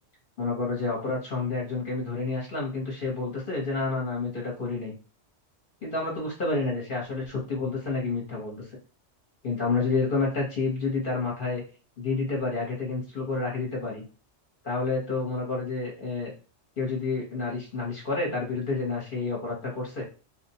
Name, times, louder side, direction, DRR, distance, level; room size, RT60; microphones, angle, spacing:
voice 1, 0.4-4.9 5.8-8.6 9.4-11.6 12.0-14.0 14.6-16.3 16.8-20.1, left 3 dB, 50° left, -2 dB, 1.0 m, -29 dB
4.0 x 2.1 x 2.7 m, 0.35 s
omnidirectional pair, 1.2 m